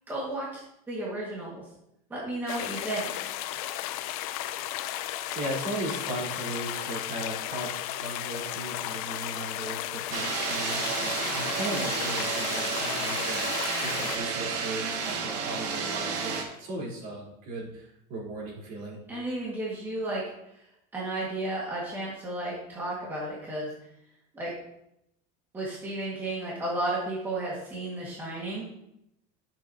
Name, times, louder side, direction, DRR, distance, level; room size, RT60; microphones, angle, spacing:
voice 1, 0.1-0.6 0.9-1.6 2.1-3.1 19.1-20.2 20.9-23.7 24.3-24.5 25.5-28.7, right 2 dB, 10° right, -6 dB, 1.8 m, -33 dB
sound 1, 2.5-14.2, left 13 dB, 65° left, 0.6 m, -34 dB
voice 2, 5.3-19.0, right 1 dB, 45° right, -4 dB, 4.0 m, -37 dB
sound 2, 10.1-16.4, right 5 dB, 85° right, 2.0 m, -31 dB
12.0 x 7.5 x 2.8 m, 0.83 s
supercardioid pair, 165°, 20 cm